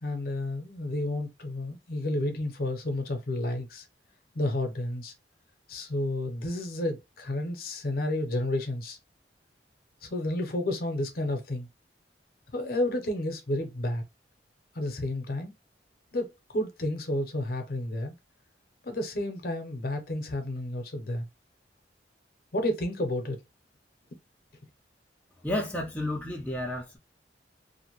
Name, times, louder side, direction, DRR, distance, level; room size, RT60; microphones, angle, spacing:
voice 1, 0.0-3.9 4.3-5.1 5.7-9.0 10.0-11.7 12.5-14.0 14.7-15.5 16.1-18.2 18.8-21.3 22.5-23.4, left 1 dB, 55° left, 0.6 m, -31 dB
voice 2, 25.4-27.0, left 1 dB, 10° left, 0.4 m, -31 dB
2.5 x 2.1 x 2.9 m
head